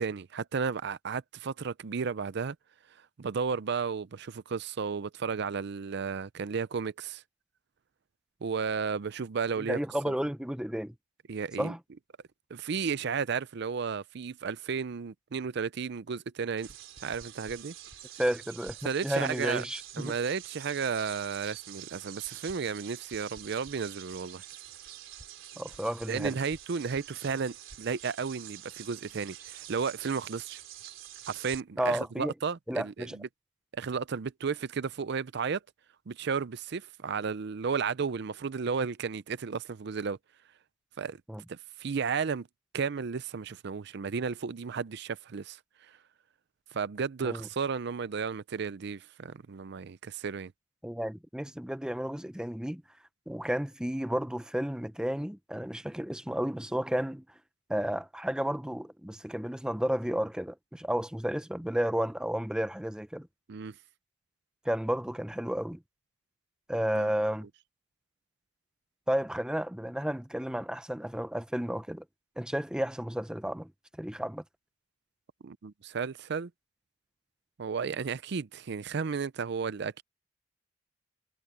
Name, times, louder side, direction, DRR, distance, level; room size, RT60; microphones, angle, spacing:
voice 1, 0.0-2.6 3.2-7.2 8.4-9.8 11.3-11.7 12.5-16.7 17.0-17.7 18.8-19.6 20.0-24.4 26.1-30.6 31.3-33.3 33.7-35.6 36.1-40.2 41.0-41.2 41.5-42.5 42.7-46.0 46.7-50.5 63.5-63.7 66.9-67.1 75.4-76.5 77.6-80.0, right 5 dB, 60° right, 0.5 m, -33 dB
voice 2, 9.6-10.9 11.6-11.8 18.2-18.8 19.0-20.2 25.6-26.4 31.8-32.3 32.7-33.2 41.3-41.4 47.2-47.5 50.8-52.8 53.3-57.2 57.7-63.3 64.6-65.8 66.7-67.5 69.1-72.0 72.4-73.7 74.0-74.4, equal, 5° right, 0.7 m, -32 dB
sound 1, 16.6-31.6, right 11 dB, 90° right, 3.6 m, -47 dB
head